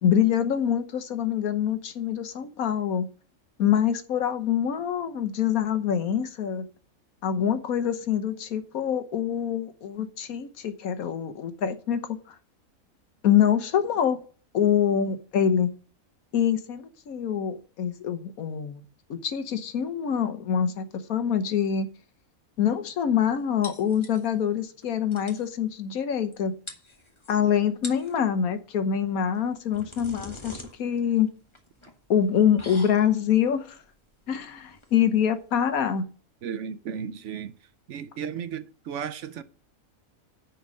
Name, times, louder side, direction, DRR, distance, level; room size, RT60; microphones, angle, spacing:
voice 1, 0.0-3.1 3.6-6.6 7.2-12.3 13.2-14.2 14.5-15.7 16.3-18.8 19.1-21.9 22.6-26.5 27.3-31.3 32.1-33.8 34.3-36.0, left 8 dB, 90° left, 1.4 m, -25 dB
sound 1, 23.6-24.5 24.8-24.9 25.1-25.5 26.3-26.4 26.7-27.3 27.7-28.2 29.3-36.0, left 1 dB, 20° left, 1.3 m, -44 dB
voice 2, 36.4-37.6 37.9-39.4, right 7 dB, 65° right, 0.9 m, -34 dB
10.0 x 4.6 x 6.3 m
omnidirectional pair, 1.5 m